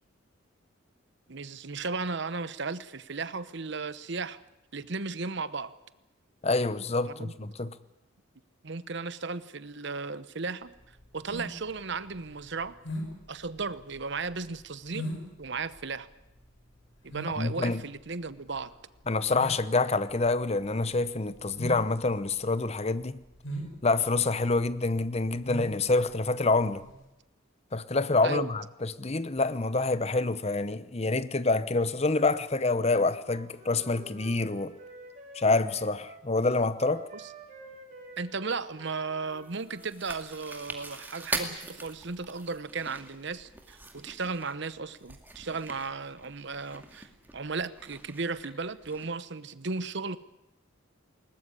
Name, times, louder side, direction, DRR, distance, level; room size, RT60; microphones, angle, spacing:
voice 1, 1.3-4.4 4.7-5.7 7.0-7.3 8.6-10.7 11.1-12.7 13.3-15.1 15.4-16.1 17.0-18.7 28.2-28.5 37.1-37.3 38.2-50.2, right 4 dB, 55° right, 0.9 m, -35 dB
voice 2, 6.4-7.7 17.4-17.8 19.1-23.2 23.8-26.8 27.7-34.7 35.3-37.0, left 3 dB, 30° left, 0.8 m, -27 dB
sound 1, 10.7-27.0, equal, 75° left, 6.4 m, -41 dB
Wind instrument woodwind instrument, 33.1-36.2 36.7-39.9, right 2 dB, 35° right, 5.3 m, -49 dB
Chewing mastication, 39.3-49.1, right 2 dB, 10° right, 2.2 m, -42 dB
21.0 x 19.5 x 9.9 m
head